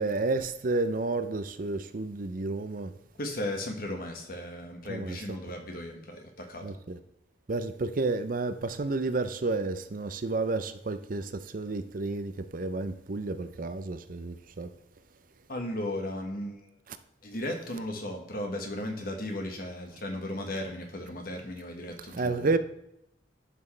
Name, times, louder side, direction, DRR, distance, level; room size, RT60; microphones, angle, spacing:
voice 1, 0.0-2.9 4.9-5.2 6.6-7.0 7.5-14.7 22.1-22.6, right 3 dB, 50° right, 0.5 m, -31 dB
voice 2, 3.2-6.7 15.5-16.7 17.2-22.6, left 1 dB, 50° left, 1.5 m, -36 dB
11.0 x 6.1 x 3.3 m
head